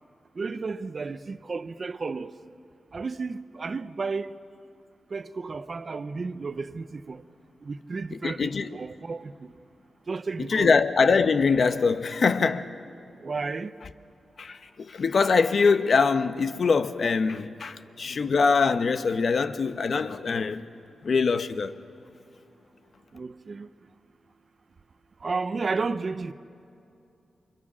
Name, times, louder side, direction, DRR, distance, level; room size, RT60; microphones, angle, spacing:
voice 1, 0.4-2.3 2.9-4.3 5.1-7.2 7.6-9.5 10.1-10.8 13.2-13.7 23.1-23.7 25.2-26.3, right 4 dB, 45° right, 0.8 m, -32 dB
voice 2, 8.2-8.7 10.4-12.7 14.4-20.6 21.0-21.7, left 5 dB, 60° left, 0.9 m, -23 dB
29.0 x 24.0 x 6.3 m
wide cardioid pair, 105°, 0 cm